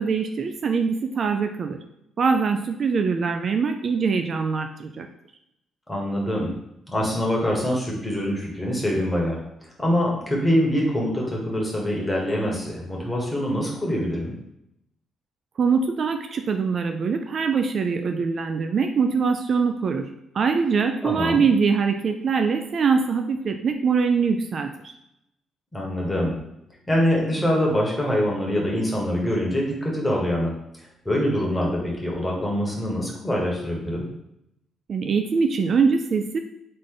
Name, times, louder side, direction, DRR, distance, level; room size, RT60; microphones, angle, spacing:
voice 1, 0.0-1.8 2.2-5.1 15.6-20.1 20.3-24.7 34.9-36.4, right 5 dB, 50° right, 6 dB, 0.4 m, -23 dB
voice 2, 5.9-6.5 6.9-9.4 9.8-14.3 21.0-21.4 25.7-26.4 26.9-30.5 31.0-34.1, equal, 10° left, -2 dB, 1.5 m, -24 dB
3.7 x 3.3 x 3.9 m, 0.81 s
cardioid pair, 90°, 0 cm